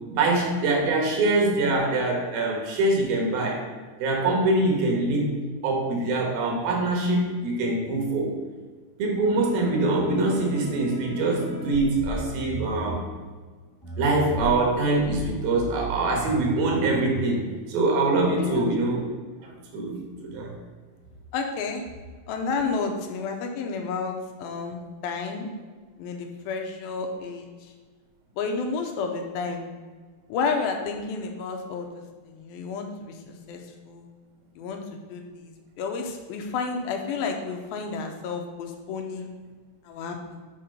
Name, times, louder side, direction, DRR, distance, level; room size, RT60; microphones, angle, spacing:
voice 1, 0.1-3.6 4.0-5.3 5.6-8.3 9.0-13.1 14.0-19.0 19.4-20.5, right 2 dB, 70° right, 1 dB, 3.0 m, -24 dB
sound 1, 9.2-13.0 13.8-17.4, right 2 dB, 40° left, 1.2 m, -35 dB
voice 2, 18.4-18.7 21.3-21.8 22.3-25.5 26.0-27.7 28.4-29.6 30.3-34.1 34.6-39.3 39.8-40.4, left 4 dB, 80° left, 3 dB, 2.5 m, -31 dB
7.4 x 4.3 x 5.3 m, 1.4 s
omnidirectional pair, 4.3 m